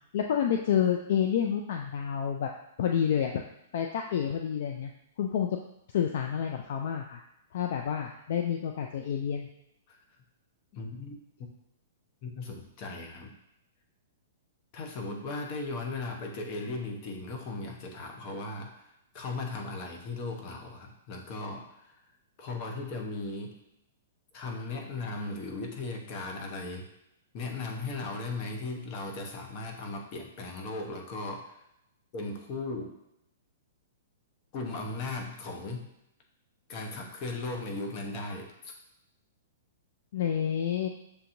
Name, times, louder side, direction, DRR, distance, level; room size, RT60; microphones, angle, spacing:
voice 1, 0.1-2.5 2.8-3.4 3.7-4.9 5.2-5.5 5.9-7.2 7.5-9.5 40.1-40.9, left 8 dB, 65° left, 3 dB, 0.4 m, -29 dB
voice 2, 10.7-11.2 12.2-13.3 14.7-18.9 19.1-22.0 22.4-23.6 24.3-26.9 27.3-31.6 32.1-32.9 34.5-35.9 36.7-38.7, left 3 dB, 40° left, 1 dB, 0.9 m, -37 dB
6.8 x 2.8 x 2.6 m, 0.82 s
hypercardioid pair, 135°, 0 cm